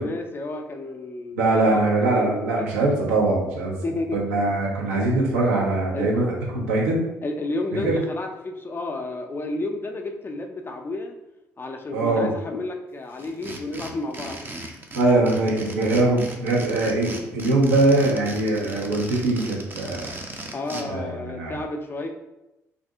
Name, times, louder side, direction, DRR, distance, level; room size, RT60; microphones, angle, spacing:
voice 1, 0.0-1.6 2.1-2.4 3.8-4.2 5.9-6.1 7.2-11.1 11.6-14.5 20.5-22.1, left 2 dB, 25° left, 4 dB, 0.4 m, -31 dB
voice 2, 1.4-3.8 4.1-7.0 7.8-8.0 11.9-12.3 14.9-20.1 20.8-21.6, right 2 dB, 75° right, -3 dB, 0.7 m, -22 dB
sound 1, 13.2-20.8, right 2 dB, 25° right, 0.5 m, -37 dB
2.7 x 2.5 x 3.5 m, 0.95 s
figure-of-eight pair, 45°, 8 cm